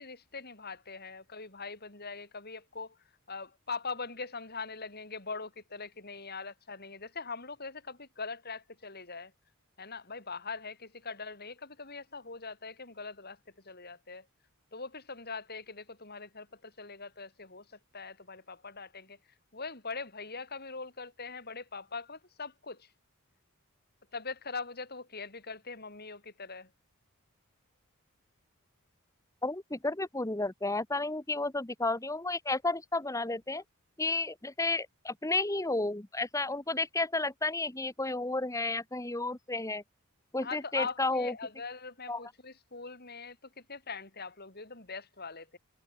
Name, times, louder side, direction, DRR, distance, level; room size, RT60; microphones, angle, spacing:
voice 1, 0.0-3.0 3.3-9.3 9.8-13.4 13.6-14.3 14.7-19.2 19.5-22.9 24.1-26.7 40.4-45.6, left 4 dB, 45° left, 6.3 m, -42 dB
voice 2, 29.4-33.6 34.0-39.8 40.3-41.3 42.1-42.2, left 2 dB, 15° left, 1.3 m, -32 dB
head